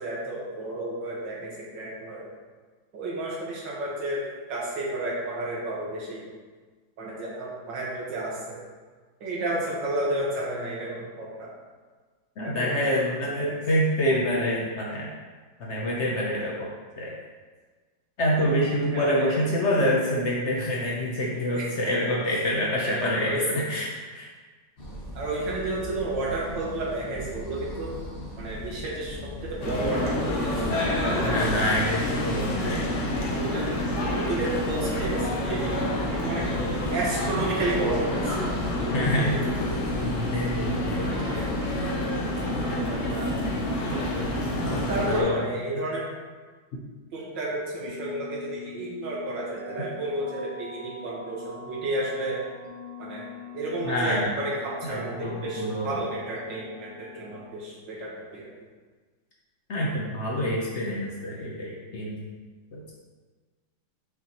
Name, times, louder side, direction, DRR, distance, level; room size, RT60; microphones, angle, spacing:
voice 1, 0.0-2.3 2.9-6.2 7.0-8.6 9.2-11.5 12.4-13.6 18.9-19.2 21.5-22.0 22.8-23.8 25.2-28.0 28.4-31.6 32.4-32.5 33.3-36.5 36.9-38.4 38.8-39.5 40.9-41.5 42.6-43.3 43.8-44.1 44.7-46.1 47.1-52.4 53.0-53.3 53.5-58.5, right 2 dB, 65° right, -5 dB, 2.0 m, -32 dB
voice 2, 12.4-15.1 15.6-16.7 17.0-17.1 18.2-24.3 31.2-32.9 38.9-39.5 39.9-41.1 44.6-45.4 53.8-54.3 54.8-56.0 59.7-62.2 62.7-62.9, equal, 70° left, -3 dB, 0.6 m, -27 dB
sound 1, 24.8-41.8, equal, 35° left, 1.8 m, -40 dB
sound 2, 29.6-45.2, left 1 dB, 50° left, 1.0 m, -28 dB
sound 3, 47.8-57.5, left 4 dB, 90° right, 1.8 m, -44 dB
5.8 x 5.6 x 3.0 m, 1.4 s
omnidirectional pair, 2.2 m